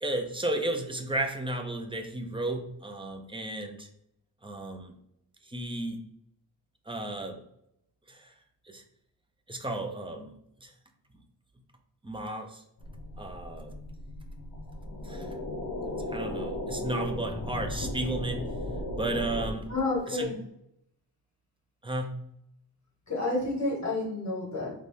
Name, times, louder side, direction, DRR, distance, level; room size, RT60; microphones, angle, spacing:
voice 1, 0.0-3.9 4.4-5.0 5.4-6.0 6.9-7.4 8.1-8.3 8.7-8.8 9.5-10.3 10.6-10.7 12.0-12.6 13.2-13.8 15.0-15.3 16.1-18.5 19.0-19.7 20.1-20.3 21.8-22.2, right 2 dB, 15° right, 5 dB, 0.4 m, -33 dB
sound 1, 12.8-19.8, left 1 dB, 65° left, 0.9 m, -36 dB
voice 2, 19.7-20.4 23.1-24.7, left 2 dB, 45° left, -5 dB, 1.6 m, -30 dB
3.9 x 3.1 x 3.5 m, 0.76 s
wide cardioid pair, 165°, 39 cm